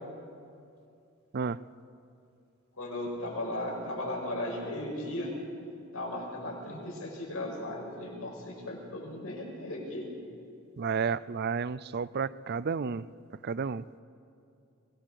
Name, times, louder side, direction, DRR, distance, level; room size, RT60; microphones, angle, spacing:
voice 1, 2.8-5.3 5.9-10.1, left 1 dB, 90° left, -1 dB, 5.7 m, -36 dB
voice 2, 10.8-13.0 13.4-14.0, right 5 dB, 50° right, 18 dB, 0.5 m, -31 dB
24.0 x 19.5 x 6.5 m, 2.5 s
head